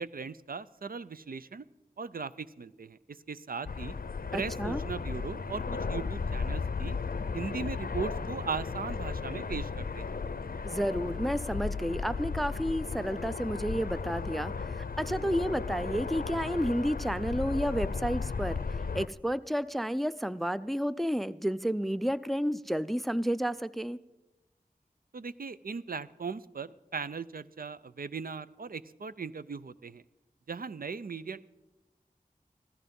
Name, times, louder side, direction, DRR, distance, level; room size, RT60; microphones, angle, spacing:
voice 1, 0.0-1.6 2.0-3.9 4.3-7.0 7.3-10.1 25.1-30.0 30.5-31.5, right 5 dB, 70° right, 15 dB, 0.5 m, -38 dB
sound 1, 3.7-19.1, left 4 dB, 70° left, 0.5 m, -35 dB
voice 2, 4.3-4.8 10.6-18.6 18.9-24.0, equal, ahead, 16 dB, 0.4 m, -31 dB
15.5 x 13.5 x 5.3 m, 1.0 s
wide cardioid pair, 55°, 15 cm